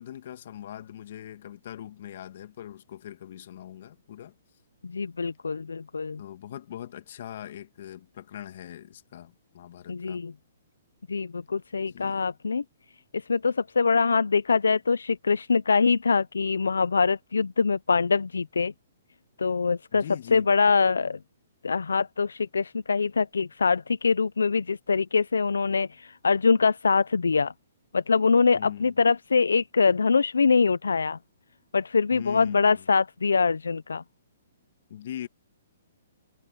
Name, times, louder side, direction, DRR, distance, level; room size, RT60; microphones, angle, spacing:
voice 1, 0.0-4.4 6.2-10.2 11.8-12.2 19.9-20.6 28.5-29.0 32.1-32.9 34.9-35.3, left 11 dB, 60° left, 2.0 m, -41 dB
voice 2, 4.8-6.2 9.9-10.3 11.1-12.6 13.1-18.7 19.4-20.0 20.3-21.2 21.6-27.5 27.9-31.2 31.7-34.0, left 5 dB, 85° left, 0.5 m, -24 dB
hypercardioid pair, 135°, 0 cm